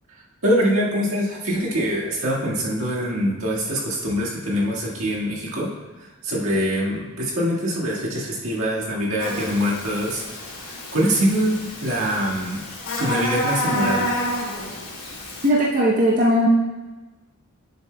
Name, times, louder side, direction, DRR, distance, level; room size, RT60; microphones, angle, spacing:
voice 1, 0.4-5.7 6.0-12.6 13.0-14.2, equal, 65° right, -4 dB, 1.7 m, -24 dB
Buzz, 9.2-15.5, left 1 dB, 75° left, 2.3 m, -29 dB
voice 2, 15.4-16.5, equal, 35° right, -5 dB, 0.8 m, -18 dB
10.5 x 7.2 x 2.2 m, 1.2 s
head